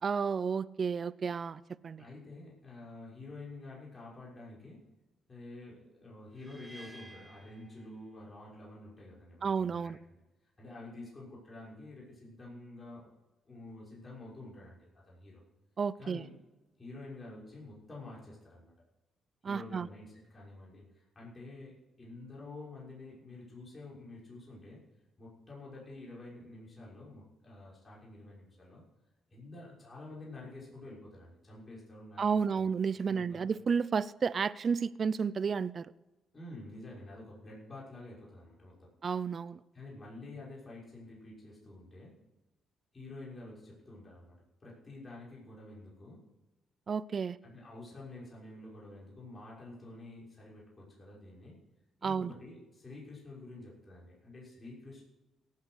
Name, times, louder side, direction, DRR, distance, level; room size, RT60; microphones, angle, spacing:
voice 1, 0.0-2.0 9.4-10.0 15.8-16.2 19.4-19.9 32.2-35.9 39.0-39.6 46.9-47.4 52.0-52.3, right 6 dB, 45° right, 18 dB, 0.5 m, -32 dB
voice 2, 2.0-4.8 5.3-10.0 10.6-13.1 13.5-15.4 16.0-16.3 16.8-18.7 19.4-24.8 25.2-28.8 29.3-32.2 32.5-32.7 33.0-33.4 36.3-38.9 39.7-42.2 42.9-46.3 47.4-51.6 52.0-55.0, left 2 dB, 30° left, -5 dB, 5.9 m, -49 dB
sound 1, 6.3-8.5, right 1 dB, 5° left, 2.1 m, -54 dB
17.5 x 8.6 x 6.5 m, 1.0 s
cardioid pair, 90°, 0 cm